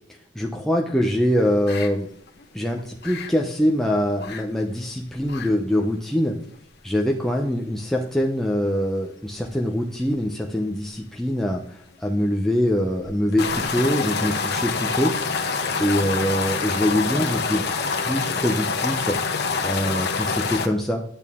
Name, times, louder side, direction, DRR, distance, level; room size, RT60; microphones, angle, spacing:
voice 1, 0.1-2.1 2.5-6.4 6.8-15.1 15.8-17.7 17.9-21.0, equal, ahead, -1 dB, 0.7 m, -24 dB
sound 1, 1.7-1.9 2.3-2.4 2.8-3.3 4.2-4.4 4.7-4.8 5.2-5.5 5.8-5.9 6.5-6.6 9.4-9.7 10.0-10.1 13.1-20.7, left 4 dB, 60° left, 1.1 m, -26 dB
10.5 x 8.8 x 3.6 m, 0.66 s
head